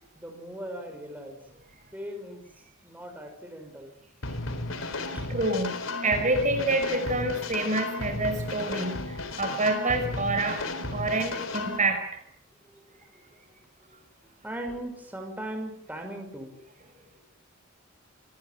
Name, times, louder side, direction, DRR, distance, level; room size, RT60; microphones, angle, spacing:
voice 1, 0.1-1.4 1.9-2.5 2.8-3.9 5.1-5.2 12.6-13.1 14.4-16.5, right 1 dB, 10° right, 3 dB, 6.3 m, -39 dB
sound 1, 4.2-11.8, left 2 dB, 90° left, 4.1 m, -34 dB
voice 2, 5.3-10.6 10.9-12.0, right 2 dB, 40° right, 6 dB, 5.4 m, -27 dB
28.0 x 20.5 x 7.8 m, 0.63 s
head